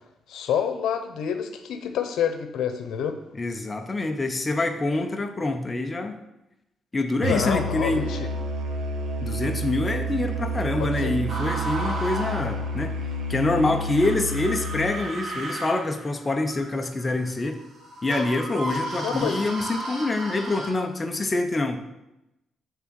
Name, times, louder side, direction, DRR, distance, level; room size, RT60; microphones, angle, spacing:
voice 1, 0.3-3.2 7.3-8.3 10.8-11.1 19.0-19.4, left 8 dB, 90° left, 7 dB, 0.8 m, -28 dB
voice 2, 3.3-6.2 6.9-8.1 9.2-13.0 13.3-17.6 18.0-21.8, left 2 dB, 20° left, 4 dB, 0.6 m, -26 dB
Musical instrument, 7.2-15.0, right 1 dB, 80° right, 0.9 m, -30 dB
sound 1, 11.3-13.0 14.0-20.7, right 1 dB, 60° right, 2.1 m, -34 dB
7.3 x 3.7 x 6.2 m, 0.90 s
cardioid pair, 155°, 0 cm